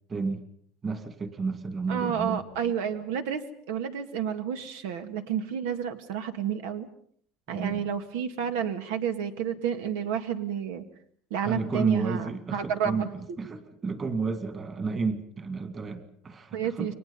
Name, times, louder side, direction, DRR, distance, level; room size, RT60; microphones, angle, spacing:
voice 1, 0.1-0.4 0.8-2.4 7.5-7.9 11.4-16.9, right 4 dB, 25° right, 8 dB, 2.3 m, -32 dB
voice 2, 1.9-3.4 3.7-6.9 7.5-10.8 11.3-13.1 16.5-16.9, right 8 dB, 90° right, 8 dB, 2.1 m, -30 dB
30.0 x 23.0 x 5.6 m, 0.62 s
cardioid pair, 150°, 0 cm